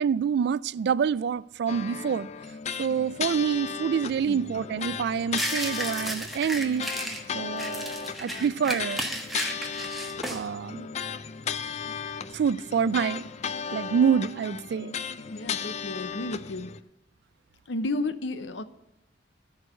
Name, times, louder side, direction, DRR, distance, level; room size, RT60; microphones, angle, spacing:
voice 1, 0.0-2.3 2.8-6.9 7.3-9.0 10.3-10.9 12.3-13.2 13.7-15.0, right 7 dB, 65° right, 0.3 m, -27 dB
sound 1, 1.7-16.8, left 7 dB, 40° left, 0.4 m, -35 dB
sound 2, 5.3-7.2 7.6-10.4, equal, ahead, 1.3 m, -33 dB
voice 2, 15.3-16.7 17.7-18.6, left 2 dB, 80° left, 0.7 m, -32 dB
14.0 x 4.7 x 6.3 m
head